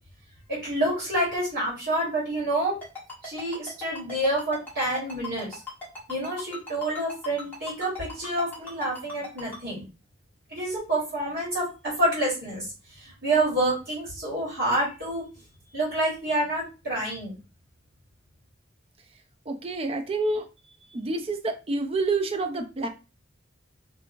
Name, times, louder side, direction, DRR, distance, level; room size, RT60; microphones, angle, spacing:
voice 1, 0.5-2.7 3.2-5.6 6.1-9.8 10.5-15.2 15.7-17.3, right 1 dB, 55° right, -6 dB, 1.6 m, -28 dB
Ringtone, 2.8-9.6, left 4 dB, 10° left, 1.2 m, -38 dB
voice 2, 19.5-20.5 20.9-22.9, right 3 dB, 30° right, 7 dB, 0.4 m, -28 dB
2.9 x 2.6 x 2.5 m, 0.30 s
head